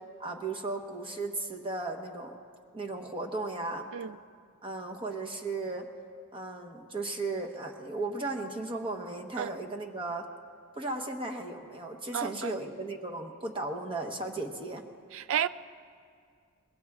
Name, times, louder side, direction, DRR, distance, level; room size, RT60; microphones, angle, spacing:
voice 1, 0.2-2.3 2.7-3.8 4.6-5.9 6.3-10.3 10.7-14.8, right 2 dB, 25° right, 2 dB, 1.1 m, -35 dB
voice 2, 12.1-12.5 15.1-15.5, right 9 dB, 60° right, 15 dB, 0.4 m, -31 dB
24.0 x 21.0 x 2.4 m, 2.2 s
head